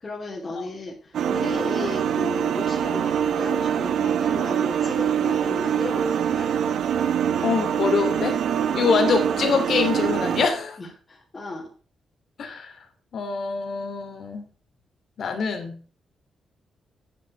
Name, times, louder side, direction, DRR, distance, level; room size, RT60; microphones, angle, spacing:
voice 1, 0.0-6.5 8.7-8.9 10.8-11.7, left 2 dB, 30° left, -3 dB, 3.2 m, -34 dB
sound 1, 1.1-10.5, right 8 dB, 80° right, 1.1 m, -24 dB
voice 2, 7.4-8.4 8.7-10.8 12.4-12.7 13.1-14.4 15.2-15.8, left 5 dB, 65° left, 7 dB, 2.6 m, -24 dB
9.4 x 7.5 x 6.0 m, 0.40 s
cardioid pair, 110°, 0 cm